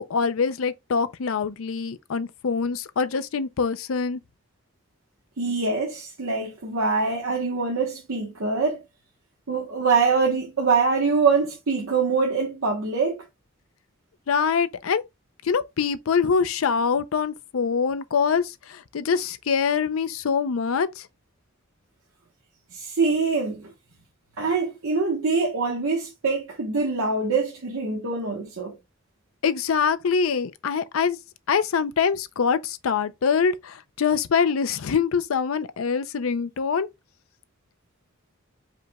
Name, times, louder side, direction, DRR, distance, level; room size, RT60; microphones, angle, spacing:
voice 1, 0.0-4.2 14.3-15.0 15.4-21.1 29.4-31.2 31.5-36.9, left 6 dB, 90° left, 0.5 m, -24 dB
voice 2, 5.4-8.8 9.5-13.2 22.7-23.7 24.4-28.8, right 4 dB, 85° right, 1.1 m, -24 dB
5.0 x 2.2 x 4.0 m
head